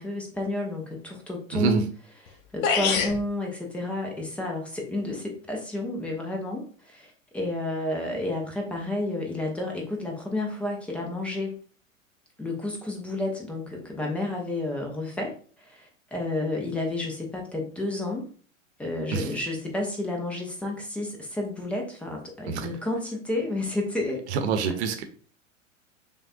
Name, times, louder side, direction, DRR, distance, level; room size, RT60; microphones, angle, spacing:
voice 1, 0.0-1.9 2.5-11.6 12.4-18.3 18.8-24.2, left 2 dB, 5° left, 0 dB, 0.3 m, -31 dB
voice 2, 1.5-1.9 19.1-19.3 22.5-22.7 24.3-25.0, right 5 dB, 55° right, 7 dB, 0.8 m, -26 dB
sound 1, 2.3-2.4 2.6-3.2, left 6 dB, 40° left, 0.6 m, -24 dB
6.2 x 2.2 x 2.5 m, 0.43 s
figure-of-eight pair, 95°, 40 cm